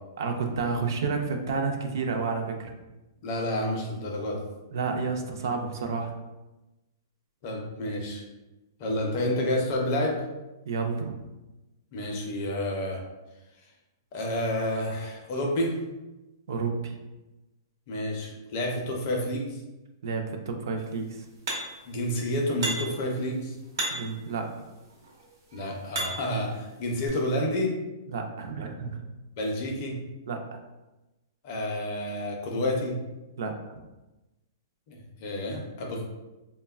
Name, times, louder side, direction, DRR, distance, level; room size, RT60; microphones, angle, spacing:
voice 1, 0.2-2.7 4.7-6.2 10.7-11.2 16.5-17.0 20.0-21.3 23.9-24.5 28.1-29.1 30.3-30.6 33.4-33.5, right 4 dB, 55° right, 4 dB, 0.3 m, -30 dB
voice 2, 3.2-4.4 7.4-8.2 8.8-10.3 11.9-13.0 14.1-15.8 17.9-19.6 21.9-23.5 25.5-27.7 29.4-30.0 31.4-33.0 34.9-36.0, left 1 dB, 30° left, 0 dB, 0.4 m, -29 dB
sound 1, 21.5-21.9 22.6-23.1 23.8-24.2 25.0-26.4 27.1-27.2, right 2 dB, 80° right, 0.8 m, -33 dB
3.2 x 2.1 x 2.3 m, 1.0 s
hypercardioid pair, 175°, 2 cm